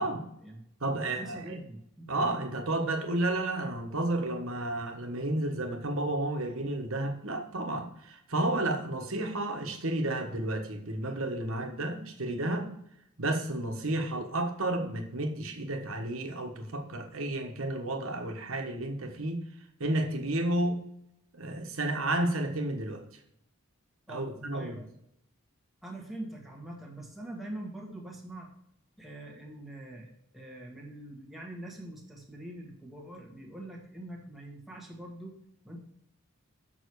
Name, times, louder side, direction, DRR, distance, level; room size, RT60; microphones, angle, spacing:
voice 1, 0.0-0.6 1.0-2.2 24.1-24.9 25.8-28.5 29.0-35.4 35.6-35.8, right 1 dB, ahead, -2 dB, 1.5 m, -44 dB
voice 2, 0.8-1.4 2.1-12.7 13.2-19.4 19.8-20.8 21.3-23.0 24.1-24.8, right 1 dB, 65° right, 4 dB, 1.3 m, -31 dB
6.9 x 6.1 x 4.7 m, 0.76 s
head